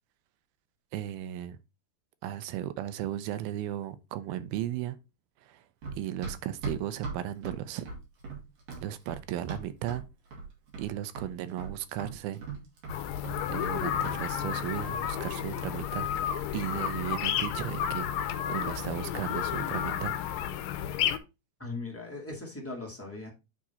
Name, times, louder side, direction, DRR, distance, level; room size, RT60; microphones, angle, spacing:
voice 1, 0.9-1.6 2.2-5.0 5.4-5.6 5.9-7.9 8.8-10.1 10.8-12.4 13.5-16.1 16.5-18.1 18.5-20.2, right 12 dB, 80° right, 2.5 m, -35 dB
Run, 5.8-10.1 10.3-10.9 11.2-13.8 14.0-14.2, right 4 dB, 60° right, 3.7 m, -39 dB
sound 1, 12.9-21.2, left 10 dB, 80° left, 2.2 m, -32 dB
voice 2, 21.6-23.3, left 3 dB, 10° left, 0.6 m, -39 dB
9.4 x 3.7 x 4.2 m
omnidirectional pair, 4.4 m